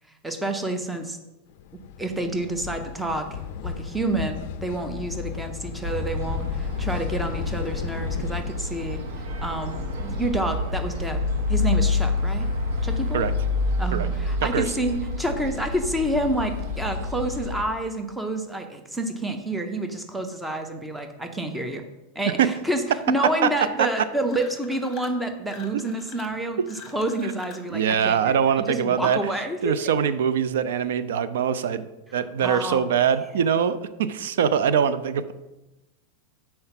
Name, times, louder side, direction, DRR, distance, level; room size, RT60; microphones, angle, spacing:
voice 1, 0.2-1.2 2.0-9.0 9.4-11.2 11.5-12.5 12.8-13.3 13.8-21.8 22.2-28.4 28.7-29.6 32.4-32.9, right 1 dB, 5° right, 6 dB, 0.5 m, -28 dB
sound 1, 1.6-8.4, left 8 dB, 50° left, 0.4 m, -35 dB
sound 2, 5.8-17.6, left 3 dB, 60° right, 1.1 m, -28 dB
voice 2, 14.4-14.8 22.4-22.5 23.8-23.9 27.7-29.2 29.6-31.8 32.1-35.3, right 8 dB, 80° right, 14 dB, 0.4 m, -23 dB
sound 3, 24.2-25.2 25.5-27.7, left 7 dB, 25° left, 0.8 m, -46 dB
5.7 x 4.3 x 5.7 m, 1.0 s
supercardioid pair, 170°, 0 cm